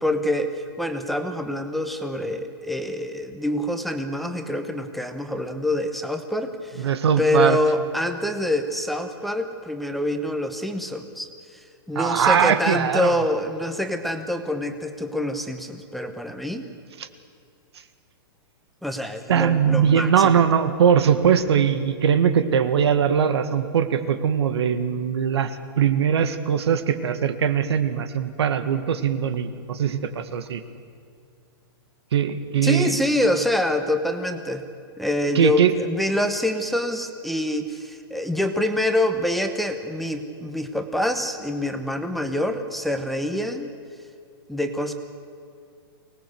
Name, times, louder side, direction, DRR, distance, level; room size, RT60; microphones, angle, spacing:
voice 1, 0.0-6.9 7.2-11.3 11.9-16.7 18.8-20.4 32.6-34.6 35.0-43.7 44.5-44.9, left 1 dB, ahead, 6 dB, 1.0 m, -26 dB
voice 2, 6.8-7.6 12.0-13.2 17.0-17.1 19.3-30.6 32.1-33.0 35.4-35.7, right 8 dB, 85° right, 10 dB, 1.8 m, -21 dB
24.0 x 19.5 x 7.9 m, 2.4 s
hypercardioid pair, 165°, 13 cm